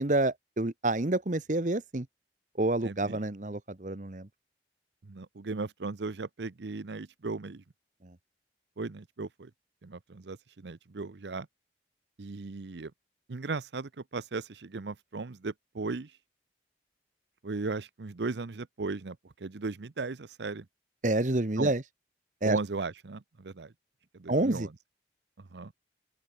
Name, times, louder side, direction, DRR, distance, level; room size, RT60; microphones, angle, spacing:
voice 1, 0.0-2.0 2.6-4.3 21.0-21.8 22.4-22.6 24.3-24.7, right 2 dB, 45° right, 1.1 m, -28 dB
voice 2, 2.8-3.2 5.0-7.6 8.8-9.5 9.8-11.5 12.2-12.9 13.3-16.1 17.4-20.6 21.6-21.7 22.4-23.7 24.2-24.7 25.5-25.7, right 3 dB, 80° right, 0.7 m, -37 dB
open air
head